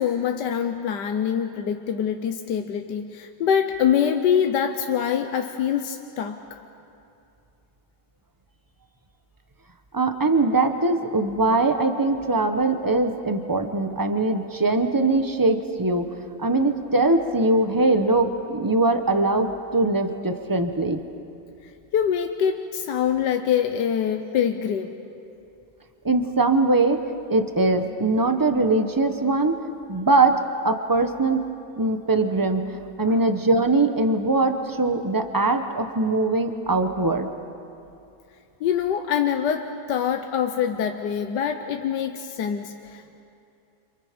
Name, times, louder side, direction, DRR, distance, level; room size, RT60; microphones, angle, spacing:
voice 1, 0.0-6.6 21.9-24.9 33.0-33.2 38.6-43.2, left 8 dB, 65° left, 6 dB, 1.4 m, -24 dB
voice 2, 9.9-16.1 16.4-21.0 26.0-27.0 27.3-29.6 29.9-30.4 30.6-31.4 31.8-37.3, right 2 dB, 35° right, 7 dB, 0.3 m, -21 dB
29.5 x 27.5 x 5.1 m, 2.6 s
omnidirectional pair, 2.1 m